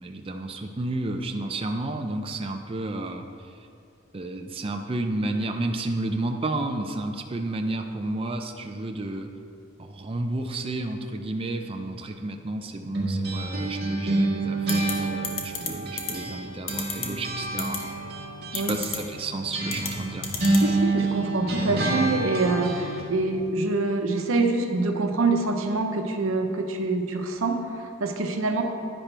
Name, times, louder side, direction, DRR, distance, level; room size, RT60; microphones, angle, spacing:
voice 1, 0.0-3.5 4.1-9.3 9.8-18.0 18.5-20.3, right 2 dB, 25° right, 4 dB, 0.5 m, -31 dB
sound 1, 12.9-16.4 16.7-23.1, right 2 dB, 55° right, 1.8 m, -28 dB
sound 2, 14.7-14.9 15.2-15.7 16.0-16.1 16.7-17.1 17.6-17.8 18.5-19.0 19.7-19.9 20.2-20.6, left 6 dB, 90° left, 1.2 m, -29 dB
voice 2, 20.5-28.6, right 3 dB, 90° right, 4 dB, 0.9 m, -25 dB
10.5 x 10.0 x 3.4 m, 2.5 s
head